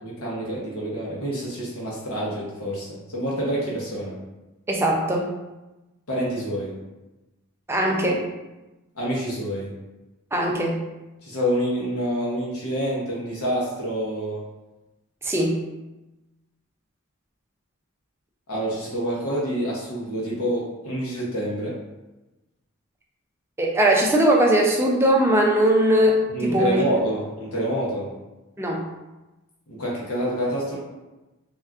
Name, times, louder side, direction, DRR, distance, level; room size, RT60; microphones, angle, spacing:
voice 1, 0.0-4.1 6.1-6.7 8.9-9.7 11.2-14.4 18.5-21.8 26.3-28.1 29.7-30.8, equal, 85° left, -5 dB, 0.7 m, -27 dB
voice 2, 4.7-5.3 7.7-8.3 10.3-10.8 15.2-15.6 23.6-26.8 28.6-28.8, right 1 dB, 10° right, -1 dB, 0.3 m, -20 dB
3.5 x 2.3 x 2.4 m, 1.1 s
head